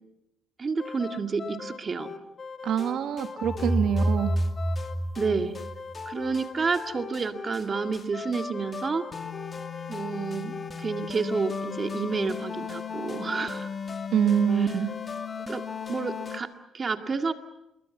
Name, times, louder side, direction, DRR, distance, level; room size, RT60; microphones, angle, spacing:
voice 1, 0.6-2.1 5.2-5.6 6.1-9.1 9.9-13.7 14.6-14.7 15.5-15.6 15.9-16.5 16.7-17.3, right 4 dB, 35° right, 6 dB, 2.0 m, -29 dB
sound 1, 0.8-16.4, left 5 dB, 35° left, 2.3 m, -37 dB
voice 2, 2.6-4.3 14.1-14.9, right 8 dB, 75° right, 8 dB, 1.7 m, -25 dB
sound 2, 3.4-6.3, right 1 dB, 15° left, 3.8 m, -28 dB
26.5 x 22.0 x 7.3 m, 0.90 s
cardioid pair, 90°, 0 cm